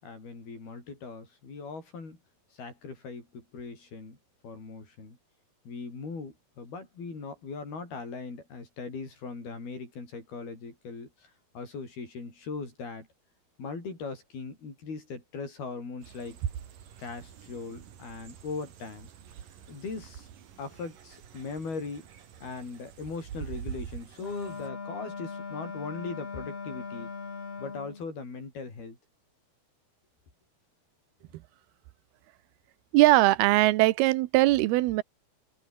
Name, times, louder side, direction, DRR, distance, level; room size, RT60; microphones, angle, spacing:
voice 1, 0.0-2.2 2.6-4.2 4.4-5.2 5.7-13.1 13.6-16.4 17.0-19.1 19.7-20.3 20.6-22.1 22.4-27.1 27.6-29.0, left 4 dB, 75° left, 9.5 m, -39 dB
sound 1, 16.0-24.7, right 9 dB, 65° right, 3.9 m, -43 dB
Wind instrument woodwind instrument, 24.2-28.0, left 4 dB, 40° left, 5.2 m, -39 dB
voice 2, 32.9-35.0, right 18 dB, 90° right, 2.8 m, -21 dB
open air
omnidirectional pair, 4.4 m